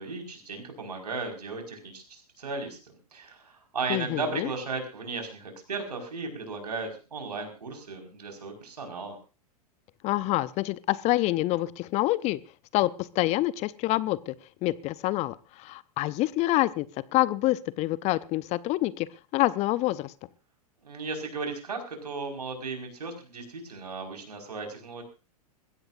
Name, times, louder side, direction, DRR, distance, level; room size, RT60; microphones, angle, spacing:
voice 1, 0.0-2.8 3.1-9.2 20.8-25.0, right 4 dB, 80° right, 3 dB, 5.2 m, -35 dB
voice 2, 3.9-4.5 10.0-12.4 12.7-14.3 14.6-16.9 17.1-20.1, left 17 dB, 35° left, 18 dB, 0.6 m, -27 dB
22.0 x 16.0 x 2.6 m, 0.31 s
hypercardioid pair, 105°, 20 cm